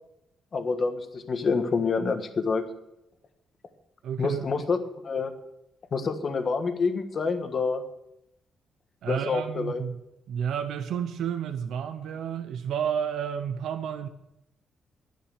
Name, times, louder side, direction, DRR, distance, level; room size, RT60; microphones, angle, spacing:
voice 1, 0.5-2.6 4.2-4.8 5.0-5.3 5.9-7.8 9.1-9.8, left 4 dB, 40° left, 1.4 m, -27 dB
voice 2, 4.0-4.4 9.0-10.0 10.3-14.1, right 8 dB, 80° right, 0.9 m, -31 dB
11.5 x 10.5 x 6.6 m
cardioid pair, 145°, 0 cm